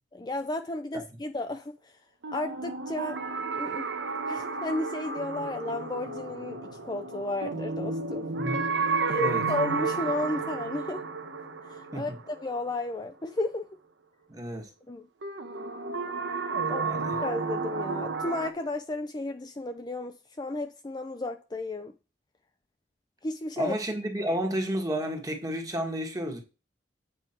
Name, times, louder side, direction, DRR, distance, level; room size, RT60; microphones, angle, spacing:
voice 1, 0.1-1.7 2.3-3.2 3.5-3.9 4.3-8.3 9.1-11.0 11.7-13.7 14.9-15.1 16.7-16.8 17.2-21.9 23.2-23.8, left 2 dB, 25° left, 0.5 m, -33 dB
sound 1, 2.2-13.1 15.2-18.5, right 4 dB, 80° right, 1.0 m, -32 dB
voice 2, 8.4-8.7 9.2-9.4 11.9-12.1 14.3-14.7 16.8-17.1 23.6-26.4, equal, 20° right, 1.5 m, -31 dB
8.4 x 4.9 x 4.3 m
head